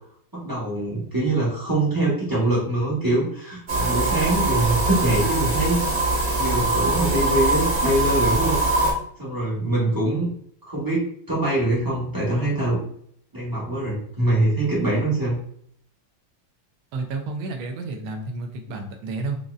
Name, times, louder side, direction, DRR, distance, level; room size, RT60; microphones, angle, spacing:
voice 1, 0.3-5.8 6.4-8.6 9.2-10.3 10.7-12.8 13.3-15.4, right 1 dB, 30° right, -8 dB, 0.4 m, -23 dB
sound 1, 3.7-8.9, right 2 dB, 50° right, 0.9 m, -22 dB
voice 2, 16.9-19.4, right 3 dB, 80° right, 4 dB, 1.4 m, -31 dB
5.2 x 2.0 x 2.4 m, 0.64 s
omnidirectional pair, 2.3 m